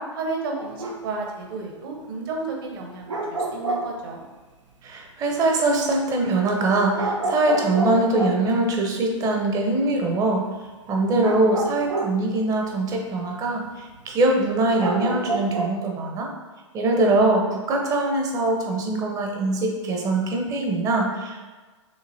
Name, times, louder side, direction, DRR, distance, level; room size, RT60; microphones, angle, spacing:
voice 1, 0.0-4.3, right 3 dB, 45° right, 1 dB, 1.0 m, -32 dB
sound 1, 0.6-1.1 3.1-4.0 6.2-6.3 6.9-8.5 11.2-12.9 13.3-13.7 14.0-14.1 14.7-15.7, right 2 dB, 75° right, 0.6 m, -28 dB
voice 2, 4.8-10.4 10.9-16.3 16.7-21.4, right 2 dB, 20° right, 1 dB, 0.7 m, -22 dB
6.7 x 2.8 x 2.7 m, 1.3 s
figure-of-eight pair, 105°, 16 cm